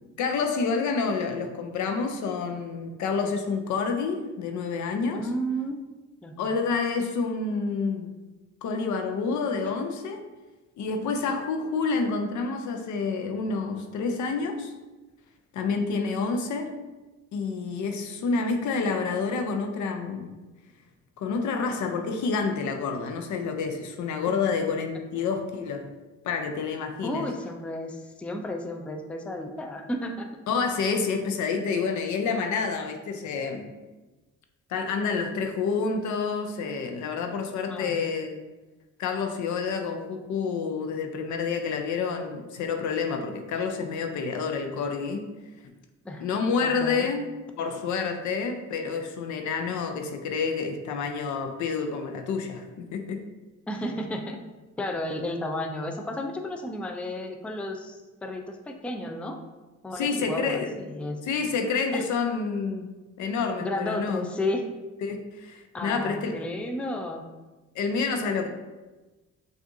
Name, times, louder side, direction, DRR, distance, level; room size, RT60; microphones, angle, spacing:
voice 1, 0.2-5.3 6.4-8.1 8.6-10.2 10.8-14.7 15.5-16.7 17.3-20.3 21.2-25.9 26.2-27.3 30.5-33.7 34.7-38.4 39.0-45.3 46.2-47.3 47.6-53.2 59.9-60.8 61.2-64.3 65.0-66.3 67.7-68.5, left 5 dB, 75° left, 5 dB, 0.6 m, -28 dB
voice 2, 5.1-5.8 6.2-6.7 27.0-30.3 37.7-37.9 46.0-46.3 46.6-47.1 53.7-54.4 54.8-59.4 59.8-61.2 61.9-62.0 63.6-64.7 65.7-67.2, left 1 dB, 5° left, 3 dB, 0.4 m, -32 dB
6.1 x 2.5 x 2.6 m, 1.2 s
cardioid pair, 90°, 30 cm